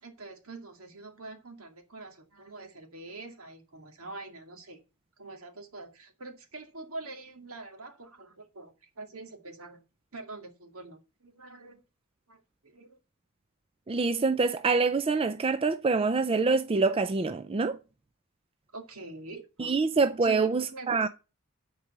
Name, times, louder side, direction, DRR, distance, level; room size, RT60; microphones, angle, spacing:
voice 1, 0.0-4.8 5.2-9.8 10.1-11.8 12.3-13.0 18.7-19.7 20.2-21.1, right 2 dB, 70° right, 2.3 m, -45 dB
voice 2, 13.9-17.8 19.6-21.1, right 4 dB, 25° right, 0.4 m, -26 dB
10.0 x 4.8 x 6.6 m
head